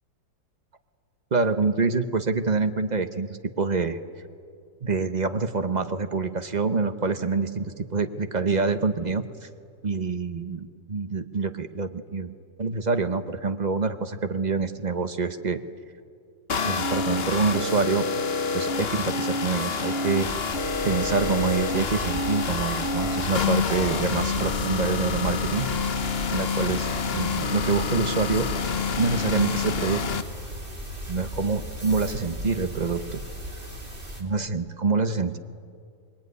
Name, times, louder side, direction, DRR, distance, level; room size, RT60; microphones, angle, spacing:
voice 1, 1.3-3.3 3.6-4.0 4.8-9.5 9.8-12.3 12.6-15.6 16.6-18.1 18.5-20.3 20.8-25.7 26.3-26.9 27.1-28.5 29.0-30.0 31.1-33.2 34.2-35.4, right 4 dB, 40° right, 9 dB, 0.6 m, -26 dB
sound 1, 16.5-30.2, left 4 dB, 40° left, 1.0 m, -27 dB
sound 2, 20.2-34.2, equal, 25° right, 3.3 m, -36 dB
26.0 x 22.0 x 9.6 m, 2.2 s
omnidirectional pair, 2.1 m